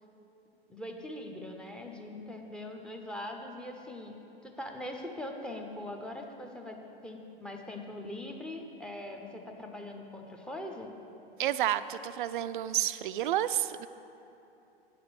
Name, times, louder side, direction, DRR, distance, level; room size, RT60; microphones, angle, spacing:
voice 1, 0.7-4.2 4.4-6.8 7.0-10.9, left 1 dB, 5° left, 3 dB, 0.7 m, -41 dB
voice 2, 11.4-13.9, right 12 dB, 60° right, 13 dB, 0.4 m, -30 dB
9.6 x 6.7 x 5.7 m, 2.9 s
figure-of-eight pair, 105°, 29 cm